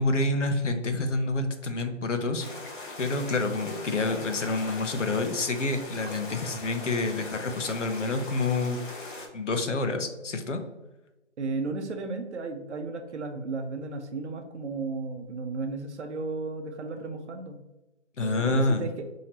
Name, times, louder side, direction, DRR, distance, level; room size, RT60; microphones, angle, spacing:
voice 1, 0.0-2.5 3.0-8.8 9.3-10.6 18.2-18.8, left 2 dB, 90° left, 7 dB, 0.7 m, -28 dB
sound 1, 2.4-9.3, left 2 dB, 45° left, 0.8 m, -40 dB
voice 2, 11.4-17.6 18.2-18.9, right 3 dB, 70° right, 5 dB, 0.7 m, -34 dB
4.2 x 2.9 x 2.8 m, 1.0 s
figure-of-eight pair, 155°, 36 cm